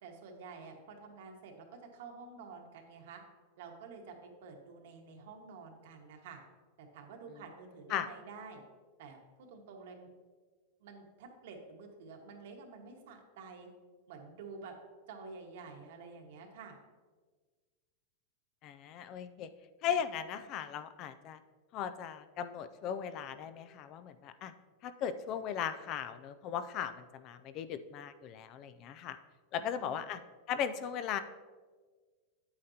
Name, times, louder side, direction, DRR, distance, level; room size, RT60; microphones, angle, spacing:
voice 1, 0.0-3.2 3.6-6.4 6.8-8.6 9.0-10.1 10.8-13.7 14.1-14.7 15.1-16.8 29.6-30.0, right 4 dB, 65° right, 2 dB, 1.5 m, -50 dB
voice 2, 18.6-19.5 19.8-21.4 21.7-24.5 24.8-29.2 29.5-30.2 30.5-31.2, left 8 dB, 35° left, 12 dB, 0.3 m, -37 dB
9.3 x 8.6 x 2.8 m, 1.4 s
supercardioid pair, 165°, 0 cm